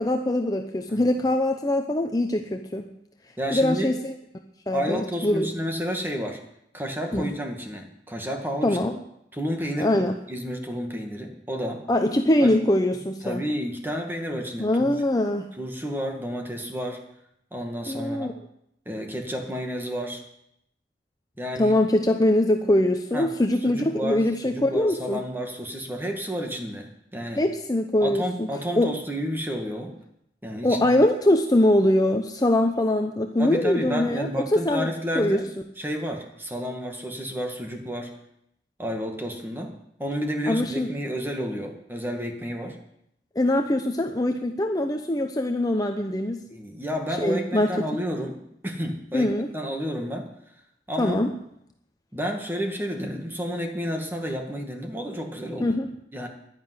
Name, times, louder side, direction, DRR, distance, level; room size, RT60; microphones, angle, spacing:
voice 1, 0.0-2.9 3.5-4.1 4.7-5.5 7.1-7.3 8.6-9.0 9.8-10.2 11.9-13.4 14.6-15.5 17.9-18.3 21.6-25.2 27.4-28.5 28.7-28.9 30.6-34.9 35.1-35.4 40.5-40.9 43.4-46.4 47.2-47.7 49.1-49.5 51.0-51.3 55.6-55.9, left 1 dB, 20° left, 4 dB, 0.8 m, -23 dB
voice 2, 3.4-3.9 4.7-6.4 6.7-8.8 9.3-11.9 12.4-12.6 13.2-14.9 15.6-17.0 17.5-18.3 18.9-20.2 21.4-21.7 23.1-23.3 23.6-27.4 28.0-30.0 30.4-30.8 33.4-35.5 35.8-38.1 38.8-42.8 46.5-48.4 48.6-50.3 50.9-51.2 52.1-55.7 56.1-56.3, equal, 10° right, 2 dB, 2.1 m, -31 dB
11.0 x 10.5 x 9.6 m, 0.77 s
head